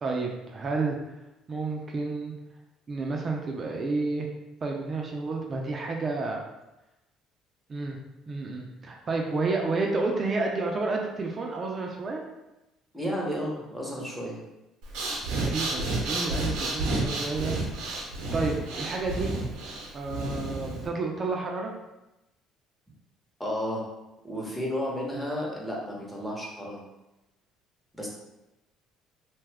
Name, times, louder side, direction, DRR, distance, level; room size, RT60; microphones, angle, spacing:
voice 1, 0.0-1.0 1.5-2.3 2.9-4.3 4.6-6.4 7.7-8.0 8.3-12.2 15.3-17.5 18.3-19.3 19.9-21.7, right 3 dB, 40° right, 0 dB, 0.5 m, -30 dB
voice 2, 12.9-14.4 23.4-23.8 24.2-26.8 27.9-28.1, equal, ahead, -4 dB, 0.9 m, -32 dB
Breathing, 14.8-20.9, right 2 dB, 85° right, 0.7 m, -31 dB
2.6 x 2.3 x 3.3 m, 0.97 s
supercardioid pair, 90°, 0 cm